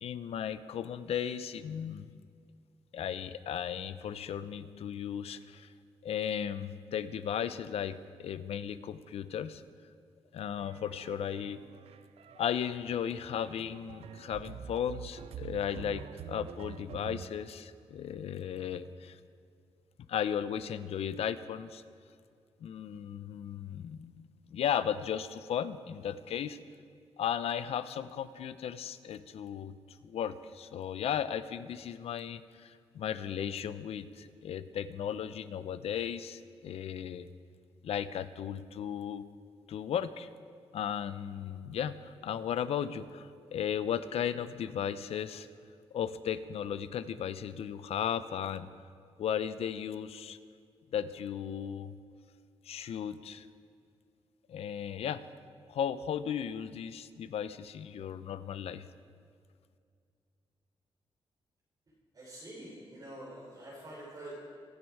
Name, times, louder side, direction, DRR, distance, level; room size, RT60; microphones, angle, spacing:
voice 1, 0.0-2.1 2.9-5.7 6.0-9.6 10.3-11.6 12.4-19.2 20.1-21.8 22.6-24.1 24.5-26.6 27.2-29.7 30.0-37.3 37.8-39.2 39.7-40.3 40.7-45.5 45.9-48.7 49.2-50.4 50.9-52.0 52.7-53.5 54.5-55.2 55.7-58.9, left 9 dB, 75° left, 13 dB, 0.6 m, -35 dB
sound 1, 10.6-17.3, right 8 dB, 80° right, 0.6 m, -47 dB
voice 2, 62.1-64.4, right 1 dB, 40° right, -6 dB, 4.1 m, -46 dB
25.0 x 9.5 x 4.7 m, 2.3 s
cardioid pair, 120°, 10 cm